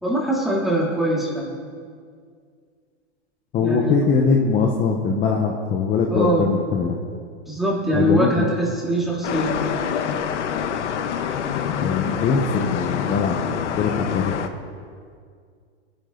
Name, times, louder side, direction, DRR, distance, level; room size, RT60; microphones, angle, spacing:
voice 1, 0.0-1.6 3.6-4.0 6.1-6.6 7.5-9.8, equal, ahead, -5 dB, 3.1 m, -23 dB
voice 2, 3.5-7.0 7.9-8.5 11.8-14.3, left 5 dB, 25° left, 1 dB, 1.2 m, -22 dB
sound 1, 9.2-14.5, left 8 dB, 85° left, 1.3 m, -26 dB
22.0 x 10.5 x 4.0 m, 2.1 s
supercardioid pair, 145°, 35 cm